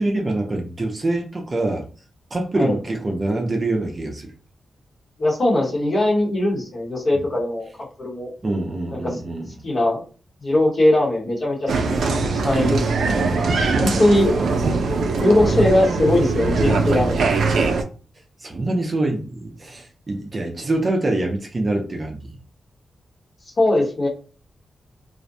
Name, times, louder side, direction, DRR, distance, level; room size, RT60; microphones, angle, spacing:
voice 1, 0.0-1.9 2.3-4.3 7.1-7.2 8.4-9.5 13.1-14.4 18.4-22.4, right 2 dB, 30° right, 0.5 m, -25 dB
voice 2, 5.2-7.7 8.0-8.3 8.9-9.2 9.6-10.0 10.4-12.0 12.3-12.9 13.8-14.3 15.2-17.2 23.6-24.1, left 1 dB, 45° left, 1.0 m, -20 dB
Applause, 11.7-17.8, right 3 dB, 85° right, 0.4 m, -21 dB
2.4 x 2.1 x 2.6 m
wide cardioid pair, 145°, 0 cm